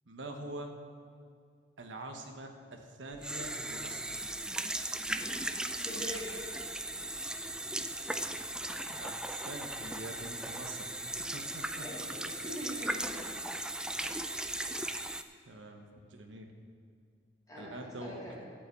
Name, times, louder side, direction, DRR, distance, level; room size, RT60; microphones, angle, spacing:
voice 1, 0.1-0.7 1.8-4.1 8.9-10.8 11.3-11.8 15.5-16.5 17.5-18.1, right 2 dB, 90° right, 4 dB, 1.2 m, -45 dB
sound 1, 3.1-15.2, right 1 dB, 5° right, 0.3 m, -37 dB
voice 2, 5.7-6.4 11.8-13.2 17.5-18.4, equal, 20° left, -6 dB, 3.2 m, -43 dB
12.5 x 5.7 x 8.4 m, 2.3 s
head